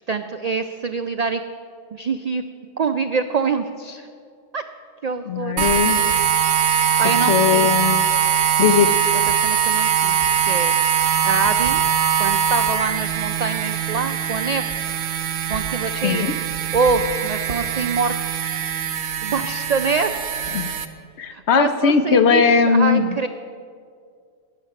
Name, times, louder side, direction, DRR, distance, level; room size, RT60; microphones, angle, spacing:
voice 1, 0.1-1.4 1.9-2.4 2.8-4.1 4.5-4.6 5.0-5.6 6.8-7.7 9.3-10.1 10.5-11.8 12.2-14.7 15.5-16.3 16.7-18.6 19.2-20.1 21.3-23.3, right 4 dB, 90° right, 8 dB, 0.3 m, -25 dB
voice 2, 5.3-6.0 7.3-8.0 8.6-8.9 16.0-16.3 20.5-20.7 21.2-23.1, left 6 dB, 65° left, 9 dB, 0.9 m, -18 dB
sound 1, 5.6-20.9, right 8 dB, 65° right, 1.0 m, -21 dB
13.0 x 9.6 x 6.5 m, 2.2 s
omnidirectional pair, 1.3 m